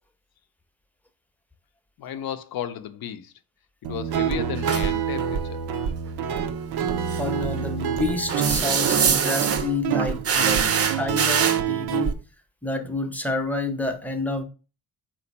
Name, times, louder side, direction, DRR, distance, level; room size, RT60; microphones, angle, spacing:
voice 1, 2.0-3.3 3.8-5.6, left 10 dB, 70° left, 0.5 m, -33 dB
Guitar, 3.8-12.1, right 8 dB, 90° right, 0.5 m, -27 dB
sound 1, 4.6-4.9 7.1-7.2 8.3-9.7 10.2-11.6, right 6 dB, 40° right, 0.5 m, -23 dB
voice 2, 7.2-12.2 12.6-14.4, left 2 dB, 5° left, 0.6 m, -29 dB
4.2 x 2.6 x 3.9 m
cardioid pair, 90°, 37 cm